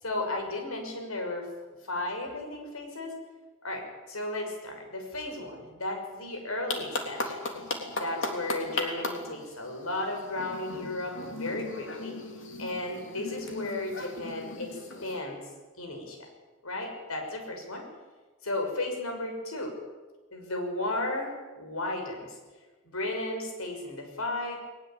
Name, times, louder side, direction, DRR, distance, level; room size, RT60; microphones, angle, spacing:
voice 1, 0.0-1.5 1.8-3.2 3.6-7.4 8.0-12.2 12.6-15.4 15.8-16.3 16.6-17.9 18.4-19.8 20.3-22.4 22.8-24.6, left 2 dB, 85° left, 3 dB, 6.2 m, -34 dB
sound 1, 6.7-15.2, left 2 dB, 60° left, 3.5 m, -37 dB
20.5 x 20.0 x 9.0 m, 1.3 s
head